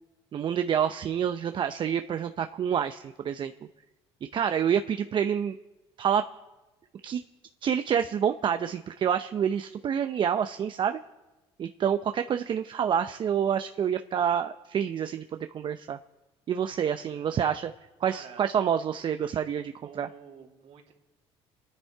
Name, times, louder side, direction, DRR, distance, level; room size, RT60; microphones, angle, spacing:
voice 1, 0.3-3.5 4.3-5.6 6.0-6.2 7.0-7.2 7.6-11.0 11.6-16.0 16.5-17.7 18.0-20.1, right 8 dB, 45° right, 8 dB, 0.6 m, -27 dB
voice 2, 16.9-17.5 18.0-18.4 19.8-20.9, right 6 dB, 60° right, 1 dB, 2.8 m, -49 dB
27.5 x 10.0 x 4.6 m, 1.1 s
supercardioid pair, 90°, 12 cm